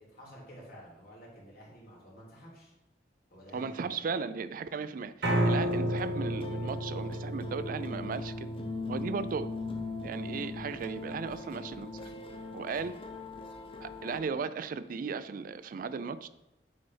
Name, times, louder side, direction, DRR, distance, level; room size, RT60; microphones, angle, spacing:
voice 1, 0.1-2.7 3.3-4.0 12.7-13.0, equal, 60° left, -4 dB, 3.0 m, -51 dB
voice 2, 3.5-5.1 5.4-8.5 8.9-9.5 10.0-12.1 12.5-12.9 13.8-16.3, right 5 dB, 50° right, 14 dB, 0.3 m, -36 dB
Piano, 5.2-11.4, right 1 dB, 90° right, 1.8 m, -33 dB
sound 1, 5.4-14.2, left 3 dB, 30° left, 0.7 m, -41 dB
8.4 x 4.1 x 5.5 m, 0.92 s
head